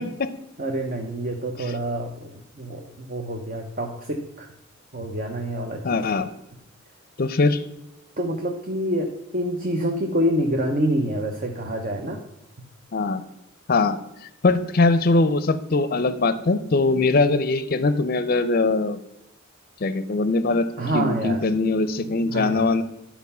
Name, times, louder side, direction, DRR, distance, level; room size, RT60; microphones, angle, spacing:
voice 1, 0.6-4.5 4.9-6.0 8.2-12.2 20.8-21.4 22.3-22.7, right 1 dB, 45° right, 3 dB, 0.8 m, -27 dB
voice 2, 5.8-6.3 7.2-7.6 12.9-13.3 13.7-14.0 14.4-19.0 19.8-20.7 20.9-22.8, left 3 dB, 45° left, 13 dB, 0.5 m, -21 dB
11.0 x 4.4 x 5.5 m, 0.86 s
head